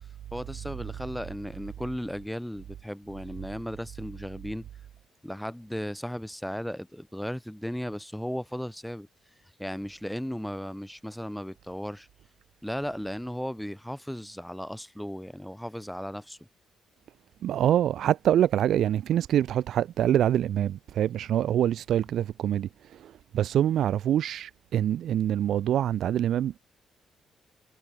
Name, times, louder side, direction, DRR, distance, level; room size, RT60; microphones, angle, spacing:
voice 1, 0.3-4.7 5.2-9.1 9.6-12.1 12.6-16.4, equal, 5° left, 7.3 m, -36 dB
voice 2, 17.4-26.6, right 11 dB, 70° right, 1.3 m, -25 dB
cardioid pair, 90°, 0 cm